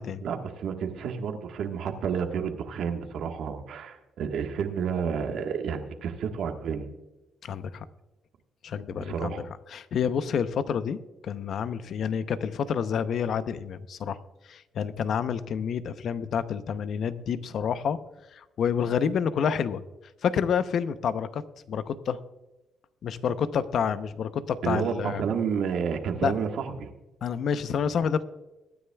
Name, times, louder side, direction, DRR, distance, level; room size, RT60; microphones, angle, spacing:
voice 1, 0.2-6.9 9.0-9.4 24.6-26.9, right 7 dB, 75° right, 5 dB, 1.4 m, -30 dB
voice 2, 7.4-7.9 8.6-9.4 9.7-14.2 14.4-18.0 18.3-19.8 20.2-22.2 23.0-25.2 26.2-26.3 27.2-28.3, left 7 dB, 65° left, 13 dB, 0.7 m, -28 dB
22.0 x 10.0 x 2.3 m, 1.0 s
cardioid pair, 90°, 0 cm